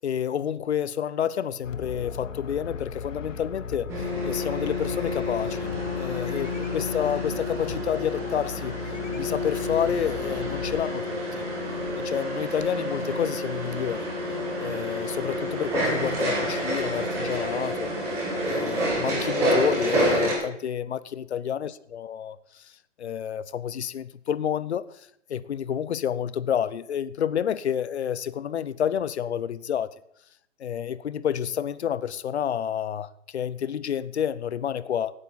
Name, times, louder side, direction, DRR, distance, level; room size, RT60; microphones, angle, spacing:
voice 1, 0.0-5.7 6.0-8.7 9.1-11.4 12.0-14.1 14.6-17.9 18.4-22.7 23.0-24.9 25.3-29.9 30.6-35.1, left 9 dB, 60° left, 0.7 m, -29 dB
sound 1, 1.6-10.8, left 5 dB, 85° left, 0.9 m, -37 dB
sound 2, 3.9-20.3, equal, 10° right, 1.4 m, -28 dB
16.5 x 9.0 x 4.0 m
hypercardioid pair, 175°, 37 cm